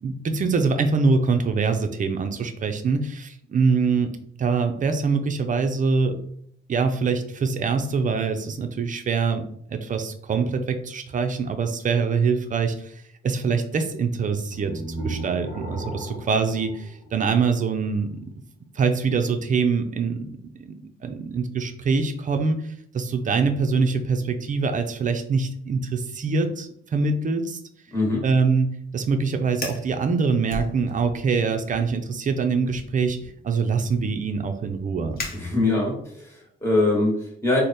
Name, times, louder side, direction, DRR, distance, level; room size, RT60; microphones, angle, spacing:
voice 1, 0.0-4.1 4.4-6.2 6.7-9.4 9.7-18.3 18.8-27.6 28.2-33.2 33.4-35.2, right 4 dB, 40° right, 7 dB, 0.5 m, -24 dB
sound 1, 14.5-17.7, right 2 dB, 20° right, 1.0 m, -35 dB
voice 2, 27.9-28.2 35.3-37.6, left 2 dB, 15° left, -4 dB, 1.3 m, -23 dB
Fire, 29.5-29.9 30.5-31.3 31.6-32.0 32.6-36.0, left 2 dB, 50° left, 0.9 m, -38 dB
3.2 x 2.1 x 4.0 m, 0.66 s
cardioid pair, 90°, 20 cm